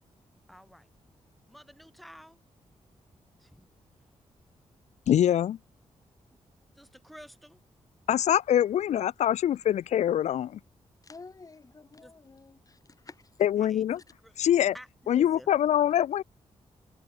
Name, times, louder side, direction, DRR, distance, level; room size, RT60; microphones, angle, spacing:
voice 1, 0.5-0.9 1.5-2.4 3.4-3.7 6.7-7.6 12.0-12.1 13.5-13.8 14.2-14.3 14.7-14.9 15.1-15.5, equal, ahead, 7.0 m, -50 dB
voice 2, 5.1-5.6 8.1-10.6 13.4-14.0 14.4-14.7 15.1-16.2, left 11 dB, 70° left, 0.4 m, -24 dB
voice 3, 11.0-13.3, left 3 dB, 30° left, 1.5 m, -50 dB
cardioid pair, 100°, 12 cm